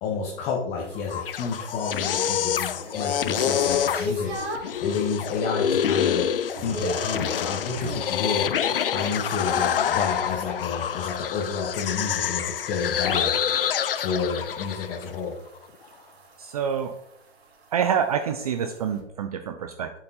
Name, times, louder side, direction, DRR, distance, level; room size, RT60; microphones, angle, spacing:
voice 1, 0.0-6.3 6.6-8.5 8.9-13.3 14.0-15.3, left 5 dB, 20° left, -1 dB, 1.0 m, -30 dB
sound 1, 0.8-4.8 5.3-5.7 6.0-8.1 10.6-19.0, equal, 60° right, 2.4 m, -39 dB
sound 2, 1.0-15.1, left 9 dB, 50° left, 0.6 m, -27 dB
voice 2, 16.4-16.9 17.7-20.0, right 7 dB, 30° right, 7 dB, 0.6 m, -27 dB
7.8 x 7.4 x 4.1 m, 0.76 s
figure-of-eight pair, 130°, 36 cm